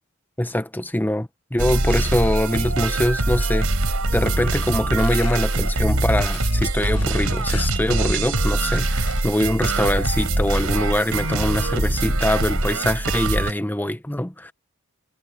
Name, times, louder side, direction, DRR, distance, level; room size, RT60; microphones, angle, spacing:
voice 1, 0.4-3.7 4.1-14.5, left 1 dB, 10° left, 1.0 m, -23 dB
sound 1, 1.6-13.5, right 2 dB, 80° right, 4.0 m, -23 dB
sound 2, 5.0-8.4 8.6-9.4 10.1-10.6, left 10 dB, 80° left, 7.1 m, -41 dB
head